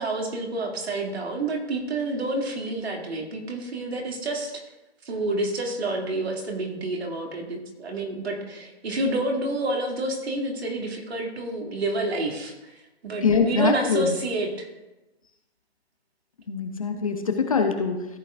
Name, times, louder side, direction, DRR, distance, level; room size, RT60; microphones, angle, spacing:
voice 1, 0.0-4.6 5.0-12.8 13.0-14.7, right 2 dB, 65° right, 0 dB, 2.6 m, -29 dB
voice 2, 13.2-14.1 16.5-18.1, left 5 dB, 30° left, 5 dB, 0.7 m, -23 dB
14.5 x 7.2 x 2.5 m, 1.0 s
hypercardioid pair, 170°, 33 cm